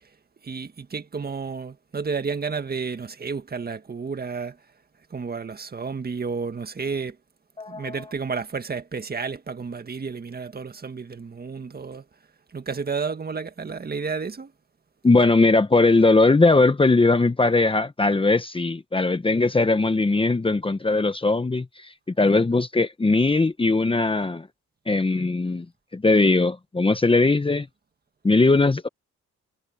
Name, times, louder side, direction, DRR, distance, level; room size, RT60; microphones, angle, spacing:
voice 1, 0.4-4.6 5.1-7.2 7.7-12.0 12.5-14.5, right 5 dB, 30° right, 1.9 m, -31 dB
voice 2, 7.6-8.1 15.0-24.5 24.9-25.6 25.9-27.7 28.2-28.9, left 3 dB, 15° left, 1.2 m, -20 dB
cardioid pair, 90°, 30 cm